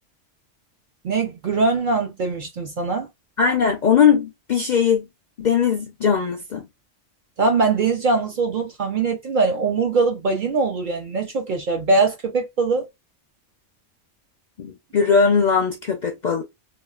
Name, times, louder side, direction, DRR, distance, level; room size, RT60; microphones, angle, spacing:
voice 1, 1.0-3.1 7.4-12.9, right 4 dB, 55° right, 0.5 m, -22 dB
voice 2, 3.4-5.1 5.4-6.6 14.6-16.4, left 6 dB, 60° left, 0.4 m, -19 dB
2.9 x 2.3 x 2.3 m
omnidirectional pair, 1.2 m